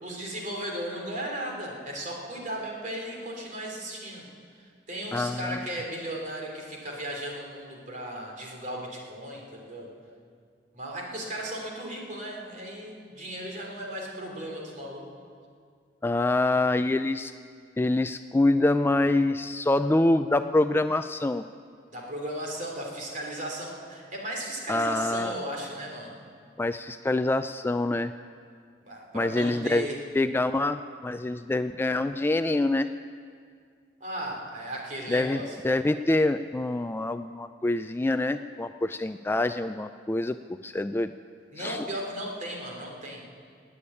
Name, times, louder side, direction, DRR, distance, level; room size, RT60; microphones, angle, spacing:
voice 1, 0.0-4.3 4.6-9.9 10.7-15.1 21.9-26.1 28.8-30.0 34.0-35.6 41.5-43.3, right 1 dB, 45° right, 0 dB, 3.3 m, -36 dB
voice 2, 5.1-5.6 16.0-17.3 17.8-21.4 24.7-25.3 26.6-28.1 29.1-29.9 30.1-32.9 35.1-41.1 41.6-41.8, left 2 dB, 15° left, 10 dB, 0.3 m, -26 dB
17.0 x 8.7 x 9.7 m, 2.1 s
head